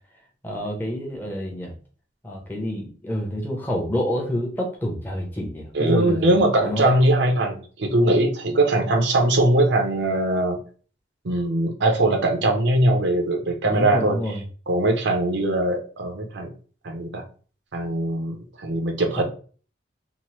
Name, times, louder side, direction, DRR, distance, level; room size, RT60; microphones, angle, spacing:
voice 1, 0.4-1.7 2.2-6.2 6.6-6.9 13.7-14.4 19.2-19.3, equal, 10° left, -1 dB, 0.6 m, -27 dB
voice 2, 5.7-10.6 11.2-14.2 14.7-16.5 16.8-17.2 17.7-19.2, right 1 dB, 65° right, 3 dB, 0.6 m, -21 dB
2.9 x 2.0 x 3.0 m, 0.40 s
head